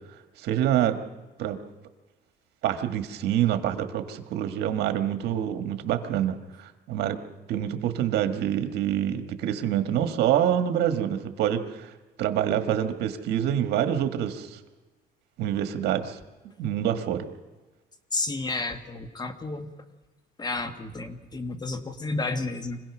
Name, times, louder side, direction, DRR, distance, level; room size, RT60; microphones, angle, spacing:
voice 1, 0.4-1.0 1.4-1.6 2.6-7.2 7.5-11.9 12.2-14.6 15.4-16.2 16.4-17.3, right 10 dB, 80° right, 8 dB, 1.6 m, -26 dB
voice 2, 18.1-19.7 20.4-22.8, left 3 dB, 25° left, 8 dB, 1.7 m, -31 dB
25.5 x 17.0 x 6.1 m, 1.2 s
cardioid pair, 110°, 17 cm